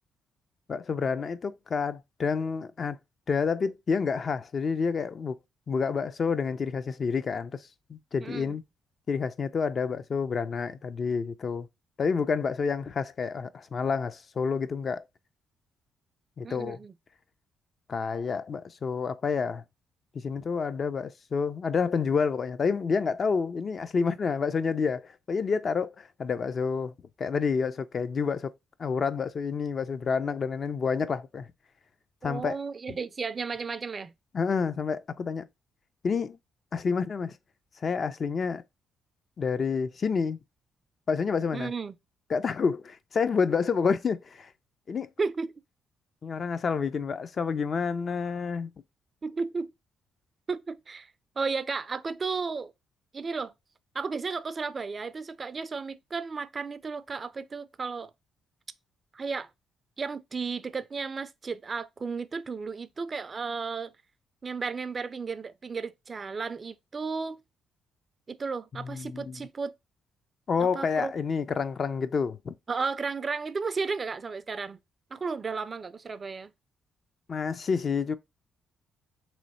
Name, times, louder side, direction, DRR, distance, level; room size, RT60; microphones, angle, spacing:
voice 1, 0.7-3.0 3.3-5.4 5.7-7.6 7.9-8.6 9.1-11.7 12.0-15.0 16.4-16.8 17.9-19.6 20.2-26.9 27.2-28.5 28.8-31.5 32.2-32.6 34.3-35.5 36.0-36.4 36.7-37.4 37.8-38.6 39.4-40.4 41.1-41.7 42.3-44.5 44.9-45.1 46.2-48.7 68.8-69.4 70.5-72.5 77.3-78.1, left 5 dB, 45° left, 0.3 m, -29 dB
voice 2, 8.2-8.6 16.4-16.9 32.2-34.1 41.5-41.9 45.2-45.5 49.2-49.7 50.5-51.1 51.4-52.7 53.1-53.5 53.9-58.1 59.1-59.5 60.0-63.9 64.4-67.4 68.3-69.7 70.6-71.1 72.7-74.8 75.1-76.5, right 4 dB, 35° right, 0.3 m, -33 dB
3.1 x 3.0 x 4.0 m
cardioid pair, 90°, 0 cm